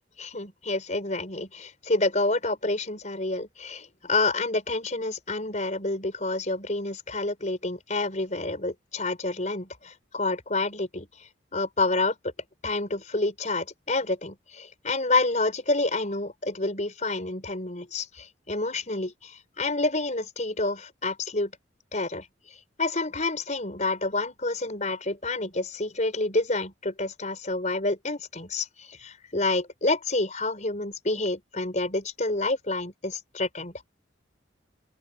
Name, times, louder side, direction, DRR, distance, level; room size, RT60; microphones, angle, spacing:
voice 1, 0.2-12.2 12.6-21.5 21.9-33.8, left 2 dB, 40° left, 5.0 m, -28 dB
open air
head